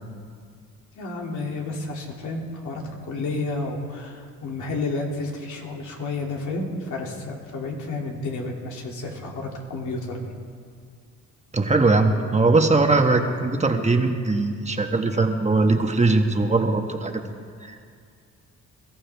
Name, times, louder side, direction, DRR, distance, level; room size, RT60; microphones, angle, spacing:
voice 1, 1.0-10.3, left 3 dB, 75° left, 0 dB, 2.8 m, -31 dB
voice 2, 11.5-17.2 17.6-17.9, right 3 dB, 20° right, 4 dB, 1.3 m, -20 dB
22.5 x 14.5 x 3.5 m, 2.2 s
cardioid pair, 90°, 30 cm